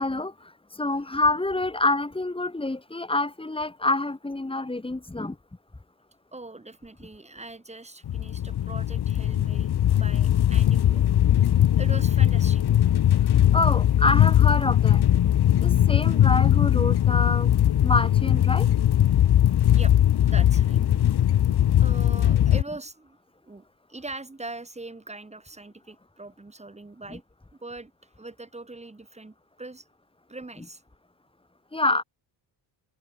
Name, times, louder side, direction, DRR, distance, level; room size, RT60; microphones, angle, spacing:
voice 1, 0.0-5.4 13.5-15.0 15.6-17.5 17.8-18.7 27.1-27.2 31.7-32.0, left 2 dB, 10° left, 5.6 m, -27 dB
voice 2, 6.3-11.0 11.7-12.6 19.7-19.9 20.2-20.9 21.8-23.2 23.4-23.6 23.9-27.2 27.6-27.9 28.2-29.9 30.3-30.8, right 2 dB, 15° right, 6.4 m, -41 dB
sound 1, 8.0-22.6, left 11 dB, 55° left, 2.3 m, -20 dB
cardioid pair, 125°, 46 cm